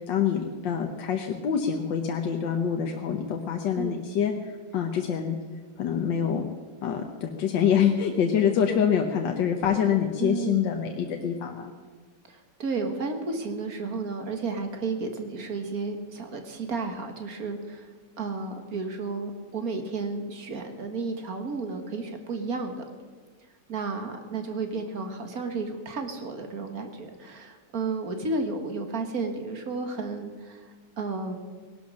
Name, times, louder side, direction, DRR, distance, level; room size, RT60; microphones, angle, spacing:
voice 1, 0.1-4.3 4.7-5.4 5.8-6.5 6.8-11.7, left 8 dB, 80° left, 3 dB, 1.7 m, -25 dB
voice 2, 10.2-10.7 12.3-17.9 18.2-22.8 23.7-31.4, right 3 dB, 55° right, 5 dB, 2.0 m, -32 dB
18.5 x 11.5 x 6.3 m, 1.5 s
omnidirectional pair, 1.9 m